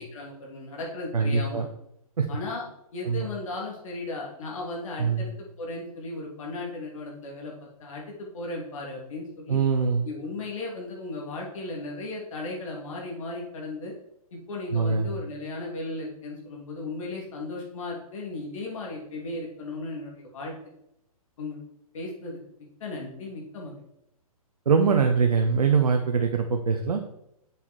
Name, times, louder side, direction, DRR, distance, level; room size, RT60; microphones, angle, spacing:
voice 1, 0.0-1.7 2.3-2.6 2.9-9.6 10.0-13.9 14.3-20.5 21.4-21.6 21.9-22.4 22.8-23.8, left 2 dB, 60° left, -2 dB, 3.4 m, -36 dB
voice 2, 1.1-1.7 2.2-2.3 3.1-3.2 5.0-5.2 9.5-10.0 14.7-15.1 24.7-27.0, right 5 dB, 75° right, 4 dB, 1.0 m, -23 dB
7.5 x 7.1 x 4.7 m, 0.80 s
figure-of-eight pair, 125°, 19 cm